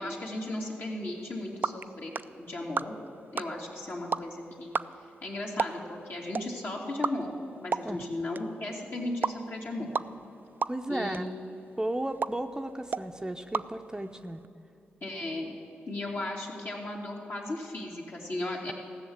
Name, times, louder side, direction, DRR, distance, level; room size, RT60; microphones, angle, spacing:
voice 1, 0.0-3.0 3.3-4.8 5.2-7.3 7.6-9.9 10.9-11.2 15.0-15.5 15.9-18.7, left 1 dB, 55° left, -2 dB, 2.6 m, -36 dB
sound 1, 1.2-14.5, right 5 dB, 45° right, 0.4 m, -37 dB
voice 2, 10.7-11.2 11.8-14.4, right 1 dB, 15° right, 7 dB, 0.7 m, -34 dB
14.5 x 6.5 x 8.7 m, 2.8 s
supercardioid pair, 40°, 4 cm